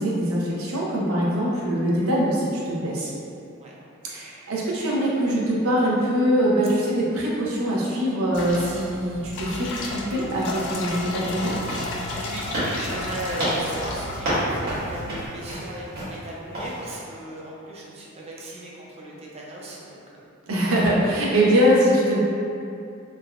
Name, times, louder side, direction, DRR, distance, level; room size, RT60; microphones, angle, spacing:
voice 1, 0.0-3.1 4.0-11.5 20.5-22.2, equal, 80° right, -5 dB, 0.6 m, -23 dB
sound 1, 8.3-15.3, left 2 dB, 60° left, 0.3 m, -33 dB
sound 2, 11.3-16.2 16.5-16.8, right 1 dB, 50° right, 1.2 m, -29 dB
voice 2, 12.1-20.2, right 1 dB, 30° right, -4 dB, 0.4 m, -37 dB
3.4 x 2.1 x 2.3 m, 2.6 s
head